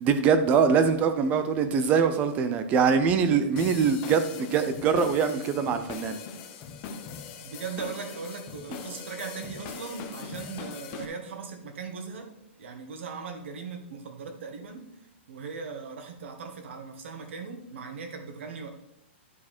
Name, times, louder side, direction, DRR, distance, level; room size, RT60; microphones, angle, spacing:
voice 1, 0.0-6.2, right 6 dB, 20° right, 9 dB, 0.6 m, -23 dB
sound 1, 3.6-11.1, left 6 dB, 30° left, 0.9 m, -41 dB
voice 2, 7.4-12.3 12.6-14.9 15.3-18.7, right 5 dB, 70° right, 5 dB, 1.8 m, -39 dB
11.0 x 4.8 x 4.4 m, 0.80 s
hypercardioid pair, 160°, 7 cm